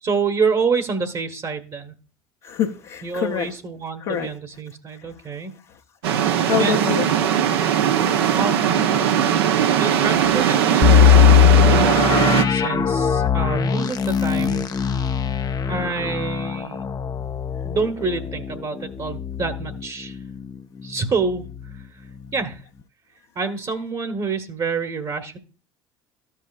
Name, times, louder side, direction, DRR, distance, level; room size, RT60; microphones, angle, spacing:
voice 1, 0.0-1.9 3.0-5.5 6.6-6.9 8.3-9.1 9.8-14.8 15.7-16.8 17.6-20.2 20.8-21.5 21.7-21.9 22.3-22.6 23.3-25.4, right 4 dB, 35° right, 1.2 m, -27 dB
voice 2, 2.4-3.6 4.0-4.3 4.9-5.1 6.1-7.1 7.5-8.6 23.4-23.5, left 9 dB, 60° left, 0.8 m, -28 dB
sound 1, 6.0-12.4, right 9 dB, 75° right, 0.7 m, -19 dB
sound 2, 10.8-20.5 20.9-21.0 21.5-21.7, left 9 dB, 30° left, 0.5 m, -19 dB
14.0 x 5.6 x 2.4 m
figure-of-eight pair, 60°, 13 cm